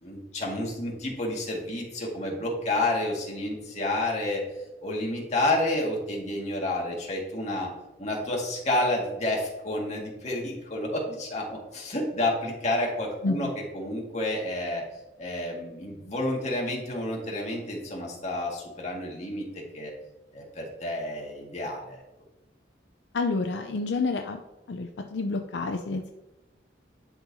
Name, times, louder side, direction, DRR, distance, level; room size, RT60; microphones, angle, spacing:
voice 1, 0.0-4.4 4.8-7.7 8.0-13.5 13.7-14.8 15.2-19.9 20.3-22.0, left 1 dB, 40° left, -2 dB, 1.9 m, -30 dB
voice 2, 23.1-24.4 24.7-26.1, left 3 dB, 75° left, 5 dB, 0.5 m, -29 dB
11.5 x 4.5 x 2.7 m, 1.0 s
head